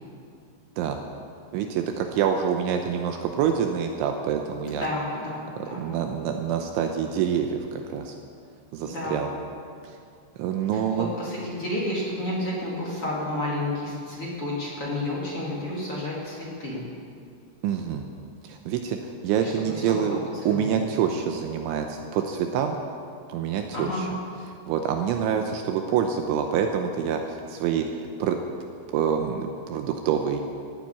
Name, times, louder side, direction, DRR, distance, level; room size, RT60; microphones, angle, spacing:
voice 1, 1.5-4.9 5.8-8.2 8.7-9.3 9.8-10.0 10.4-11.1 17.6-18.1 18.4-20.2 20.5-22.8 23.3-24.1 24.7-28.4 28.9-30.4, right 8 dB, 80° right, 4 dB, 2.9 m, -26 dB
voice 2, 4.7-5.9 8.8-9.2 10.9-16.8 19.4-20.8 23.7-24.0, left 1 dB, 35° left, -5 dB, 2.6 m, -31 dB
17.0 x 9.4 x 8.5 m, 2.3 s
omnidirectional pair, 5.9 m